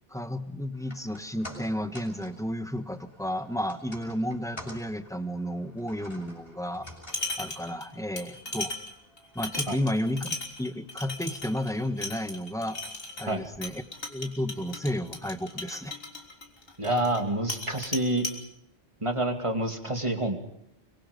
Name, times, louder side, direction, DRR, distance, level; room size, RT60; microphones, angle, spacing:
voice 1, 0.1-6.9 7.4-8.7 9.3-10.3 10.6-12.8 13.2-13.8 14.1-15.9, equal, 5° left, 9 dB, 1.4 m, -32 dB
sound 1, 0.7-13.1 13.4-13.5, equal, 25° left, 6.8 m, -50 dB
sound 2, 6.8-7.9 8.2-17.2 17.5-18.4, left 2 dB, 65° left, 3.9 m, -37 dB
voice 2, 16.8-18.3 19.0-20.4, right 1 dB, 30° right, 5 dB, 2.6 m, -27 dB
25.0 x 24.0 x 5.3 m, 0.78 s
omnidirectional pair, 1.1 m